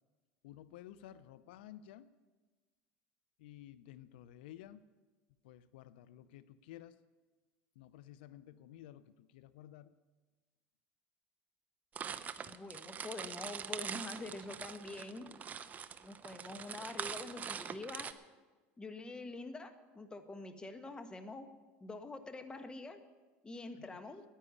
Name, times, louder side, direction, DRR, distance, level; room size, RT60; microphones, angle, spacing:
voice 1, 0.4-2.1 3.4-4.8 5.4-7.0 7.8-9.9 23.7-24.0, left 12 dB, 90° left, 16 dB, 0.5 m, -53 dB
sound 1, 11.9-18.1, right 7 dB, 30° right, 0.7 m, -43 dB
voice 2, 12.5-15.3 16.0-18.1 18.8-21.5 21.8-23.0 23.4-24.2, left 2 dB, 15° left, 9 dB, 1.3 m, -46 dB
10.0 x 9.8 x 9.5 m, 1.3 s
supercardioid pair, 115°, 5 cm